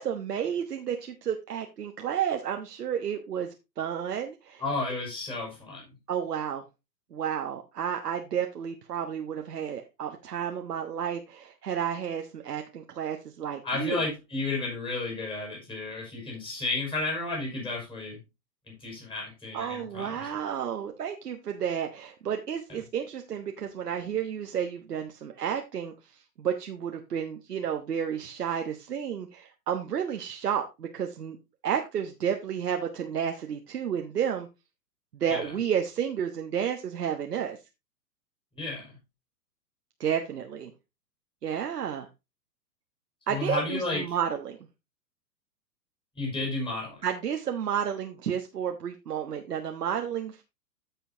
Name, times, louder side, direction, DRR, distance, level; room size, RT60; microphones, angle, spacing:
voice 1, 0.0-4.6 6.1-6.6 7.1-14.0 19.5-31.4 31.6-34.5 35.1-37.6 40.0-40.7 41.4-42.1 43.3-44.6 47.0-50.4, right 8 dB, 70° right, 4 dB, 1.2 m, -31 dB
voice 2, 4.6-5.8 13.6-18.2 18.7-20.3 35.3-35.4 38.6-39.0 43.3-44.0 46.1-47.0, left 3 dB, 10° left, -2 dB, 5.0 m, -32 dB
14.5 x 5.6 x 2.8 m, 0.25 s
figure-of-eight pair, 110°, 49 cm